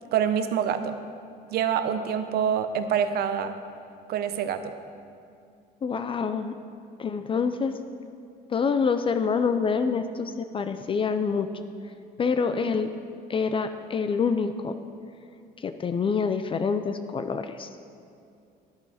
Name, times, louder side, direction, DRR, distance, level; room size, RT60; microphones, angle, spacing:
voice 1, 0.1-1.0 1.5-3.5 4.1-4.7, right 8 dB, 70° right, 9 dB, 0.7 m, -26 dB
voice 2, 5.8-6.5 7.0-7.7 8.5-11.5 12.2-12.9 13.3-14.7 15.6-17.7, left 5 dB, 30° left, 9 dB, 0.4 m, -26 dB
10.5 x 8.9 x 4.2 m, 2.5 s
cardioid pair, 110°, 17 cm